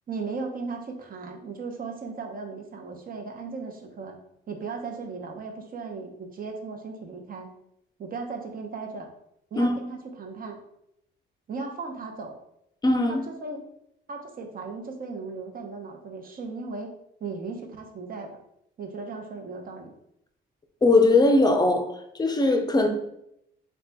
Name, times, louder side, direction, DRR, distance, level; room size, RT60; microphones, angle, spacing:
voice 1, 0.1-4.2 4.5-7.5 8.0-9.1 9.5-10.6 11.5-12.4 13.1-13.6 14.1-16.9 17.2-18.3 18.8-19.9, right 4 dB, 45° right, 3 dB, 0.8 m, -36 dB
voice 2, 12.8-13.2 20.8-21.9 22.2-22.9, left 2 dB, 20° left, 5 dB, 0.6 m, -20 dB
3.2 x 2.3 x 3.9 m, 0.77 s
cardioid pair, 90°, 20 cm